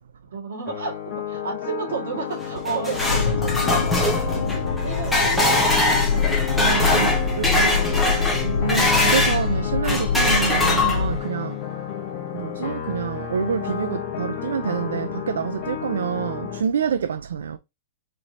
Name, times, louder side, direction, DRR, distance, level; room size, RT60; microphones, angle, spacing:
voice 1, 0.3-6.3 7.2-8.1, right 5 dB, 65° right, 2.1 m, -33 dB
sound 1, 0.7-16.6, left 9 dB, 25° left, 1.0 m, -31 dB
sound 2, 2.4-9.4 9.8-11.3, left 1 dB, ahead, 0.6 m, -22 dB
sound 3, 2.9-11.2, left 5 dB, 80° left, 0.7 m, -25 dB
voice 2, 6.6-7.7 8.4-11.9 12.3-17.6, right 7 dB, 85° right, 0.3 m, -27 dB
4.2 x 3.0 x 2.8 m
hypercardioid pair, 180°, 0 cm